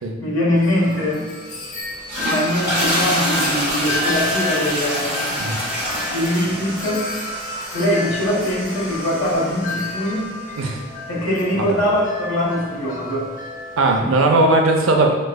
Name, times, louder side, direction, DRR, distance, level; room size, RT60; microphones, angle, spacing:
voice 1, 0.2-1.3 2.2-5.4 6.1-7.1 7.7-10.3 11.1-13.3 14.0-14.1, left 1 dB, 85° left, -6 dB, 1.2 m, -22 dB
Wind chime, 0.6-14.0, left 2 dB, 40° left, 0.6 m, -31 dB
sound 1, 1.9-10.2, equal, 10° right, 1.4 m, -26 dB
voice 2, 13.8-15.1, right 2 dB, 80° right, 3 dB, 0.5 m, -17 dB
3.4 x 3.1 x 2.2 m, 1.4 s
head